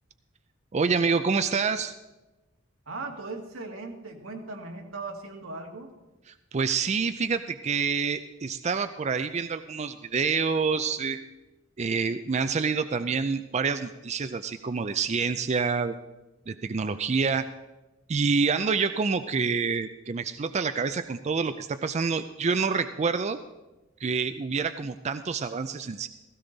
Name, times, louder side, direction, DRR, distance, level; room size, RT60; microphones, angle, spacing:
voice 1, 0.7-1.9 6.5-11.2 11.8-15.9 16.5-17.5 18.1-23.4 24.0-26.1, right 5 dB, 35° right, 10 dB, 0.4 m, -27 dB
voice 2, 2.9-5.9, right 3 dB, 90° right, 2 dB, 2.1 m, -38 dB
16.5 x 15.5 x 4.0 m, 1.1 s
head